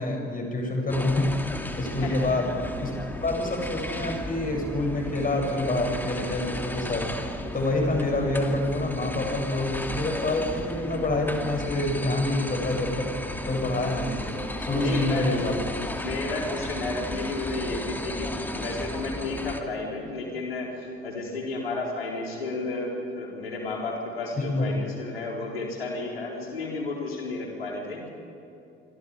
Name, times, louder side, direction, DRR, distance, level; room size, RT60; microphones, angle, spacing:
voice 1, 0.0-1.3 1.8-2.9 3.2-7.1 7.5-13.1 13.4-15.6 24.4-24.7, left 2 dB, 30° left, 1 dB, 7.7 m, -27 dB
sound 1, 0.9-19.6, left 1 dB, 5° left, 2.5 m, -34 dB
voice 2, 2.0-2.3 14.7-15.4 16.0-28.1, left 3 dB, 80° left, -1 dB, 4.4 m, -32 dB
28.0 x 25.0 x 5.0 m, 2.7 s
figure-of-eight pair, 55°, 29 cm